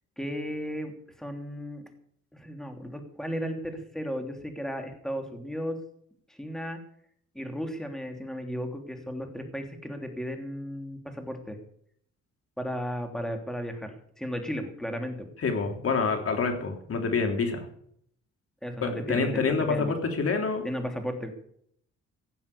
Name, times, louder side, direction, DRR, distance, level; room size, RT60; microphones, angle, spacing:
voice 1, 0.2-0.9 1.2-1.8 2.3-5.8 6.3-6.8 7.3-11.6 12.6-15.3 18.6-19.9 20.6-21.3, equal, ahead, 4 dB, 3.1 m, -35 dB
voice 2, 15.4-17.7 18.8-20.7, left 4 dB, 50° left, 4 dB, 3.4 m, -27 dB
16.5 x 7.2 x 8.4 m, 0.67 s
cardioid pair, 90°, 30 cm